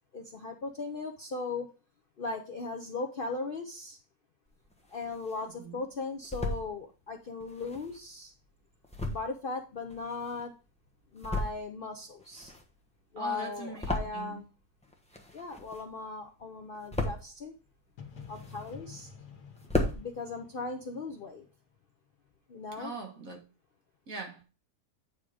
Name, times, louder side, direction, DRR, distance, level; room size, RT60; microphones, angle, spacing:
voice 1, 0.1-1.7 2.2-4.0 4.9-8.3 9.0-10.5 11.1-12.5 13.1-14.5 15.3-17.5 18.3-19.1 19.9-21.4 22.5-22.9, left 3 dB, 50° left, 0.7 m, -38 dB
sound 1, 4.5-5.5 5.9-6.7 7.4-10.6 11.0-11.8 12.1-14.6 14.8-16.1 16.4-17.4 17.9-19.0 19.3-19.4 19.6-20.0, left 1 dB, 5° left, 1.0 m, -35 dB
voice 2, 13.2-14.4 22.8-23.4 24.1-24.4, right 3 dB, 60° right, 2.0 m, -41 dB
sound 2, 18.0-21.8, left 6 dB, 85° left, 1.8 m, -50 dB
9.3 x 3.7 x 4.9 m
omnidirectional pair, 1.6 m